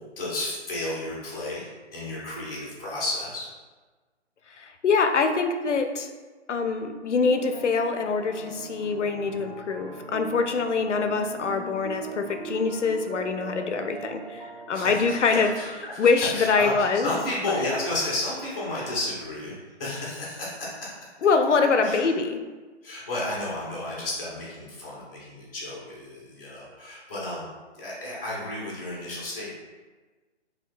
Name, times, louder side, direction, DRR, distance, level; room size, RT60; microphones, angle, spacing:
voice 1, 0.0-3.5 14.7-21.0 21.8-22.1 22.8-27.5 27.7-29.5, left 2 dB, 15° left, -7 dB, 0.5 m, -32 dB
voice 2, 4.6-6.1 6.5-15.5 16.0-17.1 17.6-17.7 21.2-22.4, left 4 dB, 80° left, 7 dB, 0.5 m, -24 dB
sound 1, 7.2-15.9, right 4 dB, 35° right, 0.5 m, -40 dB
4.3 x 2.6 x 2.5 m, 1.3 s
figure-of-eight pair, 145°, 35 cm